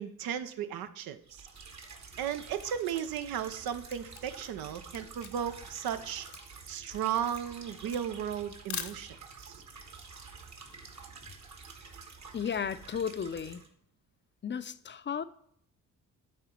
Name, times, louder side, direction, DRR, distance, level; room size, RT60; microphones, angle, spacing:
voice 1, 0.0-1.5 2.2-6.3 6.7-9.6, right 9 dB, 85° right, 11 dB, 0.6 m, -35 dB
sound 1, 1.3-13.7, right 4 dB, 50° right, 1.3 m, -49 dB
Camera, 3.7-9.5, left 8 dB, 55° left, 0.8 m, -44 dB
voice 2, 12.3-13.6 14.4-15.2, left 7 dB, 35° left, 13 dB, 0.5 m, -34 dB
9.2 x 3.7 x 4.4 m, 0.69 s
supercardioid pair, 60°, 35 cm